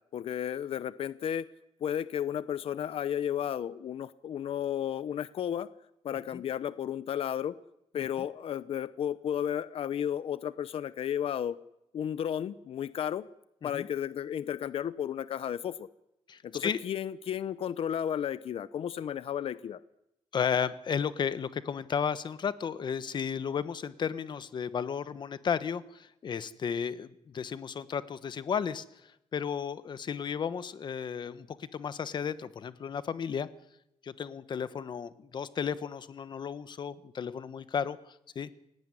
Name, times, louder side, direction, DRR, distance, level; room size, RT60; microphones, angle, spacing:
voice 1, 0.1-1.5 1.8-5.7 6.0-7.6 7.9-11.6 11.9-13.3 13.6-15.9 16.4-19.8, left 9 dB, 60° left, 15 dB, 0.9 m, -33 dB
voice 2, 16.3-16.8 20.3-33.5 34.0-38.5, left 7 dB, 45° left, 14 dB, 1.3 m, -34 dB
29.0 x 17.5 x 9.9 m, 0.86 s
wide cardioid pair, 175°, 11 cm